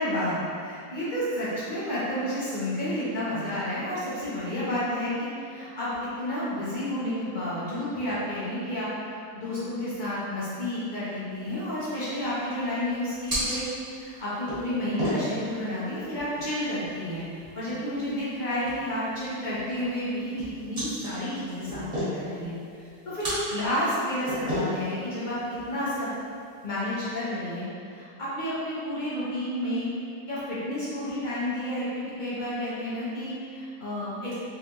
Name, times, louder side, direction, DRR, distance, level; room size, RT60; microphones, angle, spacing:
voice 1, 0.0-17.3 17.5-22.5 23.0-25.4 25.7-26.1 26.6-29.9 30.3-34.3, left 1 dB, 35° left, -10 dB, 0.9 m, -31 dB
sound 1, 11.3-26.7, equal, 25° right, 1.4 m, -37 dB
3.6 x 3.3 x 2.9 m, 2.4 s
omnidirectional pair, 1.8 m